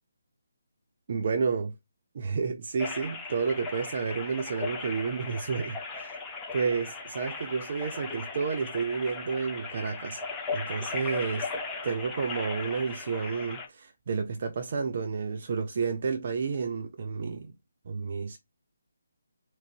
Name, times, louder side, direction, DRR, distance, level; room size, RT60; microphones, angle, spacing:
voice 1, 1.1-1.7 2.1-6.2 6.5-10.2 10.5-11.5 11.8-17.5 17.9-18.4, right 5 dB, 45° right, 0.5 m, -31 dB
sound 1, 2.8-13.7, left 4 dB, 10° left, 0.8 m, -37 dB
4.0 x 3.0 x 2.5 m
figure-of-eight pair, 155°, 0 cm